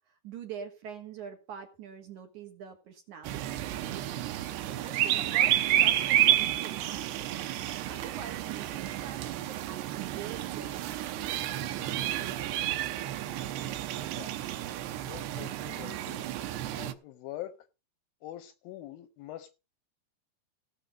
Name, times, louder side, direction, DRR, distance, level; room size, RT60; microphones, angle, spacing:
voice 1, 0.1-4.1 4.7-7.4 7.8-11.7 12.1-13.2 13.6-14.2, right 8 dB, 60° right, 2.2 m, -45 dB
sound 1, 3.2-16.9, right 13 dB, 85° right, 2.9 m, -30 dB
voice 2, 15.1-16.3 16.8-17.6 18.2-19.6, left 13 dB, 75° left, 2.2 m, -44 dB
17.0 x 6.7 x 5.1 m
omnidirectional pair, 4.9 m